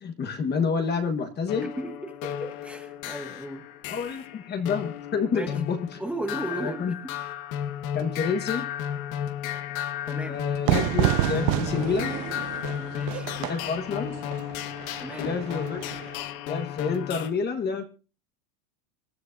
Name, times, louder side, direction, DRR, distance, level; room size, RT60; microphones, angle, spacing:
voice 1, 0.0-1.7 3.9-6.0 6.5-7.0 7.9-8.7 10.2-12.2 13.4-14.1 15.2-15.8 16.5-17.8, left 5 dB, 20° left, 6 dB, 1.3 m, -29 dB
sound 1, 1.5-17.3, left 10 dB, 60° left, 1.5 m, -34 dB
voice 2, 1.8-3.7 5.3-5.6 6.0-7.0 10.1-10.4 12.7-13.3 15.0-15.4, right 1 dB, 5° right, 4 dB, 1.2 m, -36 dB
sound 2, 10.3-15.0, right 11 dB, 35° right, 1.3 m, -42 dB
Fire / Fireworks, 10.6-16.2, right 16 dB, 60° right, 0.7 m, -29 dB
26.0 x 12.5 x 2.6 m, 0.35 s
supercardioid pair, 165°, 46 cm